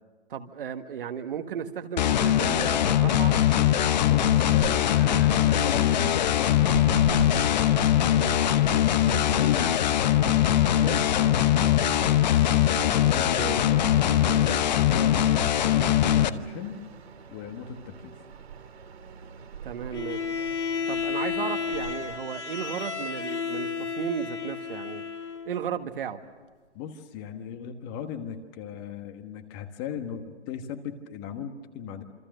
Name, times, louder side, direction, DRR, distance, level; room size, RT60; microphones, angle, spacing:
voice 1, 0.3-3.4 13.3-13.6 19.6-20.2 20.9-25.0 25.4-26.2, right 8 dB, 50° right, 1.8 m, -34 dB
sound 1, 2.0-16.3, left 11 dB, 40° left, 0.9 m, -22 dB
voice 2, 4.1-9.7 10.4-12.0 12.8-16.8 17.3-18.1 26.7-32.0, left 8 dB, 20° left, 1.4 m, -37 dB
sound 2, 4.6-22.2, right 7 dB, 65° right, 2.3 m, -43 dB
Bowed string instrument, 19.9-25.5, left 6 dB, 80° left, 2.3 m, -32 dB
27.5 x 25.5 x 6.6 m
hypercardioid pair, 150°, 35 cm